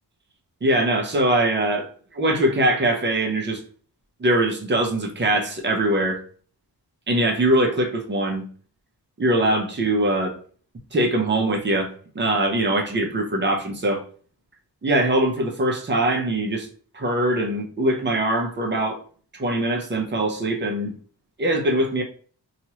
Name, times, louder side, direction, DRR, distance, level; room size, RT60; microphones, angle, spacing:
voice 1, 0.6-3.6 4.2-6.2 7.1-8.4 9.2-10.4 10.9-14.0 14.8-16.7 16.9-19.0 19.4-20.9 21.4-22.0, right 1 dB, 25° right, 0.6 m, -22 dB
2.9 x 2.4 x 2.9 m
wide cardioid pair, 150°, 42 cm